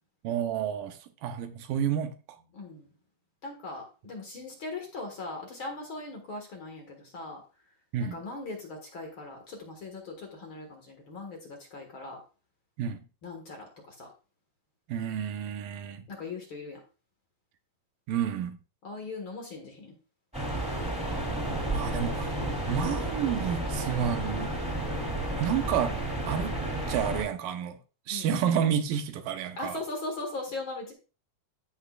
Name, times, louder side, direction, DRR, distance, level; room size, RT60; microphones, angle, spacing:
voice 1, 0.2-2.1 7.9-8.2 12.8-13.0 14.9-16.1 18.1-18.6 21.7-22.4 22.7-24.6 25.4-26.6 26.9-27.8 28.1-29.8, right 8 dB, 90° right, 2.6 m, -30 dB
voice 2, 2.5-2.9 3.4-7.4 8.0-12.2 13.2-14.1 16.1-16.8 18.8-19.9 28.1-28.3 29.6-30.9, left 3 dB, 45° left, 2.0 m, -39 dB
sound 1, 20.3-27.2, right 1 dB, ahead, 2.3 m, -32 dB
14.5 x 5.8 x 2.3 m
omnidirectional pair, 3.9 m